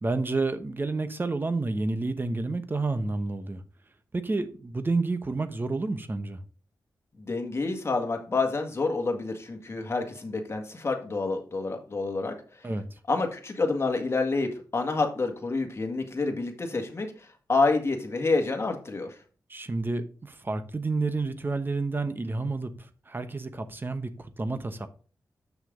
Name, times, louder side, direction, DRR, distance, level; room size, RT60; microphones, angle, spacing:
voice 1, 0.0-3.6 4.1-6.4 12.6-13.0 19.5-24.9, right 3 dB, 30° right, 10 dB, 1.0 m, -30 dB
voice 2, 7.2-12.3 13.1-17.1 17.5-19.1, left 3 dB, 40° left, 4 dB, 1.8 m, -28 dB
7.5 x 6.3 x 3.7 m, 0.39 s
wide cardioid pair, 105°, 7 cm